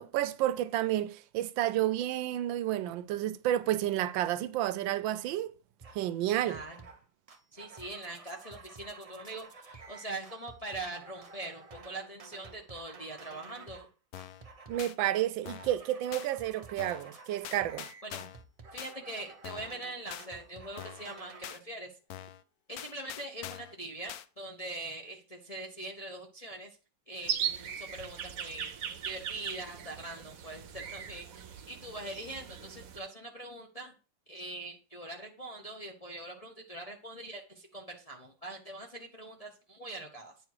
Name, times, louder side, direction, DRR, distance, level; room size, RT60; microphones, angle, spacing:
voice 1, 0.0-5.5 5.9-6.6 14.7-17.9, right 13 dB, 80° right, 1.3 m, -30 dB
sound 1, 5.8-6.0 6.3-7.0 7.3-13.9 14.2-14.9 15.1-21.5, right 4 dB, 40° right, 0.5 m, -51 dB
voice 2, 6.4-6.8 7.5-13.9 18.0-18.3 18.7-21.9 22.7-26.7 27.1-33.9 34.3-40.3, right 2 dB, 30° left, 0.7 m, -43 dB
sound 2, 14.1-14.4 14.8-14.9 15.5-15.8 16.1-16.3 16.8-17.1 17.4-18.4 18.8-18.9 19.4-19.8 20.1-20.3 20.8-21.1 21.4-21.6 22.1-22.4 22.8-23.7 24.1-24.3, left 12 dB, 75° left, 0.8 m, -44 dB
sound 3, 27.2-33.0, right 8 dB, 55° right, 1.0 m, -39 dB
9.2 x 5.0 x 4.8 m
omnidirectional pair, 2.1 m